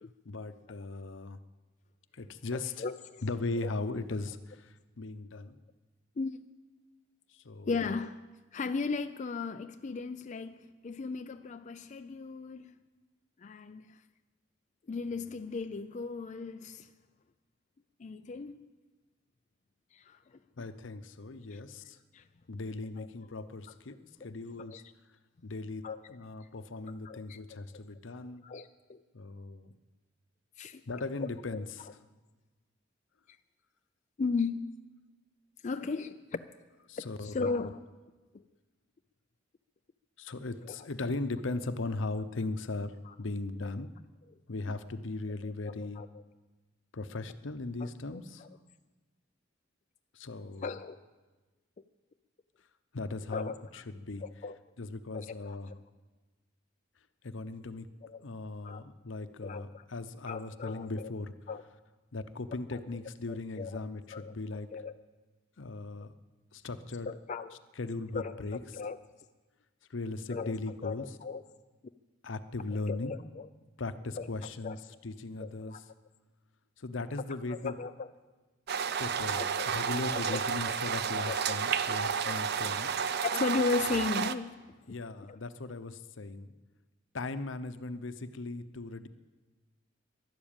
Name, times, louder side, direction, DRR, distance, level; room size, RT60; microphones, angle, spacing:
voice 1, 0.2-1.4 2.1-2.8 3.2-5.6 7.3-7.7 20.6-22.0 22.5-24.8 25.4-28.4 29.1-29.7 30.9-31.9 36.9-37.7 40.2-43.9 44.5-46.0 46.9-48.5 50.1-50.8 52.9-54.2 54.8-55.7 57.2-57.9 58.2-61.3 62.1-64.7 65.6-66.1 66.5-67.1 67.8-68.8 69.9-71.0 72.2-73.1 73.8-75.8 76.8-77.7 79.0-82.9 84.9-86.5 87.1-89.1, left 3 dB, 70° left, 0.8 m, -38 dB
voice 2, 2.8-3.2 3.6-3.7 6.2-6.4 7.7-8.2 8.5-12.7 13.4-14.0 14.9-16.9 18.0-18.7 19.9-20.4 21.5-21.6 22.1-22.2 23.0-23.1 24.7-24.8 25.8-26.1 27.0-27.4 28.4-29.0 30.6-30.8 31.2-31.6 34.2-34.6 35.6-36.5 37.0-37.8 40.7-40.9 43.1-43.2 45.4-46.2 47.8-48.5 50.6-51.0 53.3-53.8 54.2-54.6 55.1-55.6 58.0-58.2 58.6-58.8 59.4-59.8 60.3-61.1 61.5-61.6 62.7-62.8 63.3-63.8 64.1-64.3 64.7-64.9 67.1-67.6 68.1-69.0 70.3-70.5 70.8-71.4 72.7-73.5 74.2-74.3 74.6-74.8 75.4-75.8 77.5-78.1 79.4-79.8 80.1-81.6 82.2-82.7 83.2-84.6 85.3-85.4, left 4 dB, 40° left, 0.4 m, -36 dB
sound 1, 78.7-84.4, right 7 dB, 55° right, 0.6 m, -31 dB
12.5 x 11.5 x 8.8 m
head